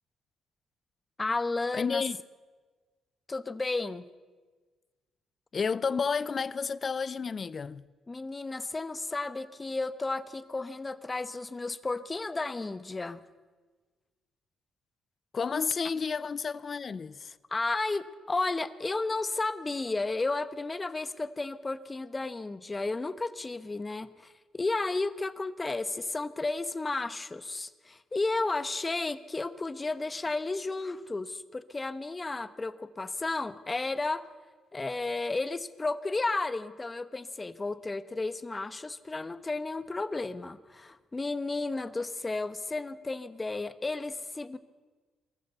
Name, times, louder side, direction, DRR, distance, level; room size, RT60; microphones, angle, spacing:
voice 1, 1.2-2.0 3.3-4.0 8.1-13.2 17.5-34.3 34.7-44.6, left 3 dB, 20° left, 1.1 m, -33 dB
voice 2, 1.7-2.2 5.5-7.9 15.3-17.4, left 5 dB, 40° left, 0.6 m, -31 dB
23.0 x 14.5 x 8.1 m
cardioid pair, 90°, 0 cm